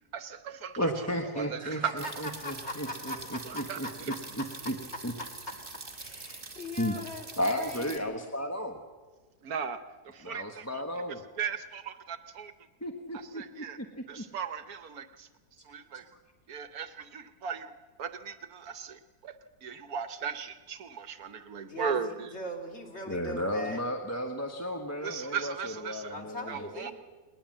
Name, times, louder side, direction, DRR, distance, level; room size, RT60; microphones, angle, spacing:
voice 1, 0.1-1.1 1.3-1.9 3.5-3.8 6.9-7.0 9.4-10.8 11.1-12.5 13.1-13.8 14.1-15.3 15.6-16.1 16.5-17.7 18.0-19.4 19.6-22.3 25.0-26.1 26.5-26.9, right 7 dB, 70° right, 10 dB, 1.4 m, -37 dB
voice 2, 0.8-4.7 5.0-5.1 6.8-6.9 7.4-8.8 10.2-11.2 12.8-13.8 14.2-14.3 23.1-26.7, equal, 10° left, 3 dB, 1.1 m, -34 dB
voice 3, 1.6-3.2 3.5-3.9 5.9-8.3 21.7-23.9 26.1-26.9, left 1 dB, 45° left, 1 dB, 3.2 m, -40 dB
sound 1, 2.0-8.0, right 3 dB, 35° right, 1.9 m, -45 dB
20.0 x 20.0 x 7.6 m, 1.3 s
omnidirectional pair, 1.7 m